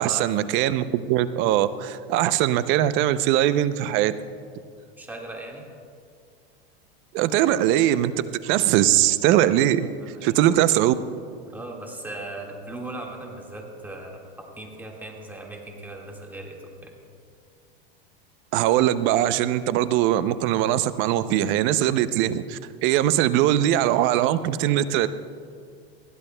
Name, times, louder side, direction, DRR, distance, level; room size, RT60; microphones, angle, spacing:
voice 1, 0.0-4.1 7.1-9.9 10.2-10.9 18.5-25.1, right 12 dB, 45° right, 14 dB, 0.5 m, -21 dB
voice 2, 5.0-5.7 10.0-10.3 11.5-17.0, right 2 dB, 5° right, 0 dB, 1.7 m, -38 dB
20.5 x 15.5 x 2.2 m, 2.2 s
supercardioid pair, 130°, 29 cm